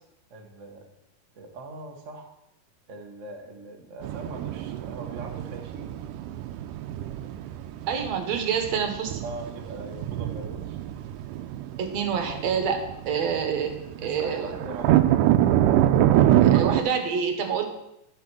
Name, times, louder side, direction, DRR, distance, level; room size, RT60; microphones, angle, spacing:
voice 1, 0.3-0.9 1.3-2.3 2.9-6.0 9.2-10.8 13.9-15.0, right 2 dB, 40° right, 2 dB, 1.1 m, -41 dB
sound 1, 4.0-16.8, right 12 dB, 90° right, 2.2 m, -25 dB
voice 2, 7.9-9.2 11.8-14.5 16.4-17.6, right 6 dB, 65° right, 5 dB, 2.3 m, -27 dB
13.0 x 6.2 x 6.1 m, 0.84 s
omnidirectional pair, 3.6 m